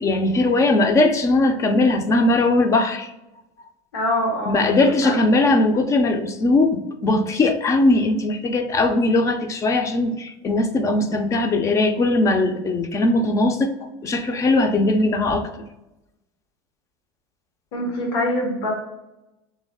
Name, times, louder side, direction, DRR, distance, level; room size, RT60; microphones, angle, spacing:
voice 1, 0.0-3.1 4.5-15.6, left 2 dB, 25° left, 7 dB, 0.4 m, -19 dB
voice 2, 3.9-4.7 5.0-5.1 17.7-18.7, left 1 dB, 85° left, 0 dB, 1.1 m, -24 dB
3.4 x 3.1 x 3.5 m, 0.95 s
supercardioid pair, 130°, 12 cm